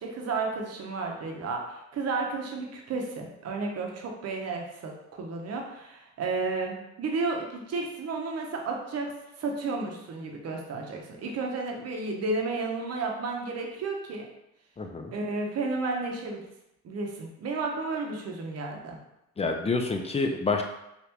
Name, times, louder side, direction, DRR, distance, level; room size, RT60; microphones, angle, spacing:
voice 1, 0.0-9.1 9.4-14.3 15.1-16.4 16.8-19.0, right 3 dB, 55° right, 1 dB, 0.8 m, -32 dB
voice 2, 14.8-15.1 19.4-20.6, left 3 dB, 20° left, 4 dB, 0.4 m, -28 dB
3.4 x 2.5 x 2.9 m, 0.84 s
cardioid pair, 90°, 30 cm